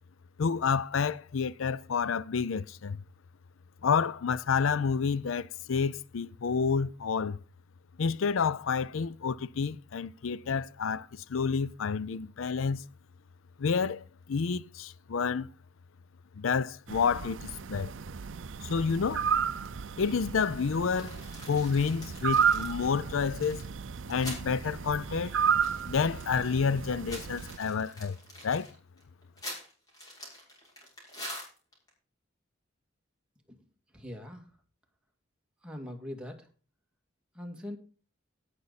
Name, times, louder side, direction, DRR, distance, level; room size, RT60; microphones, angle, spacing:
voice 1, 0.4-3.0 3.8-7.4 8.0-12.8 13.6-15.5 16.4-17.9 18.6-19.2 20.0-21.2 21.5-23.6 24.1-25.4 25.9-28.2 28.4-28.7, left 5 dB, 80° left, 0.5 m, -29 dB
sound 1, 16.9-27.6, right 7 dB, 70° right, 0.5 m, -33 dB
sound 2, 20.9-24.5 24.8-24.9 25.2-26.4 26.8-31.9, equal, 20° left, 6.2 m, -45 dB
voice 2, 33.9-34.5 35.6-36.5 37.3-37.8, left 1 dB, 5° right, 2.1 m, -41 dB
18.0 x 6.9 x 4.1 m
head